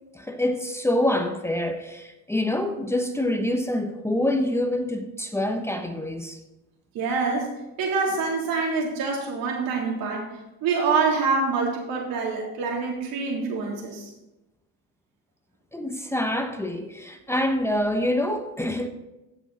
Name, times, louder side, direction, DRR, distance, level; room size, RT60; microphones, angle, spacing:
voice 1, 0.1-6.4 15.7-18.9, left 1 dB, 5° left, 0.9 m, -26 dB
voice 2, 6.9-10.3 10.6-14.1, right 4 dB, 80° right, 3.4 m, -26 dB
15.0 x 6.2 x 4.2 m
cardioid pair, 105°, 35 cm